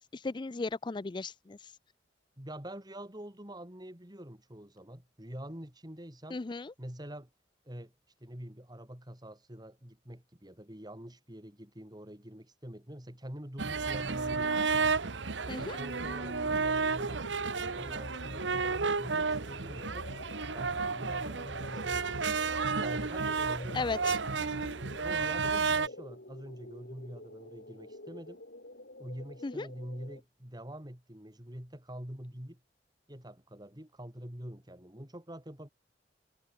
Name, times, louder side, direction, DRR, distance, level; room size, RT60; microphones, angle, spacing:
voice 1, 0.2-1.6 6.3-6.7 15.5-15.8 23.7-24.0 29.4-29.7, left 3 dB, 25° left, 0.4 m, -35 dB
voice 2, 2.4-6.4 6.8-7.3 7.6-7.9 8.2-14.6 15.6-17.4 17.7-20.1 20.5-24.7 25.0-28.4 29.0-32.6 33.1-35.7, equal, 20° right, 3.4 m, -45 dB
sound 1, 13.6-25.9, right 4 dB, 80° right, 1.1 m, -32 dB
sound 2, 15.0-30.2, left 1 dB, 60° left, 5.2 m, -48 dB
head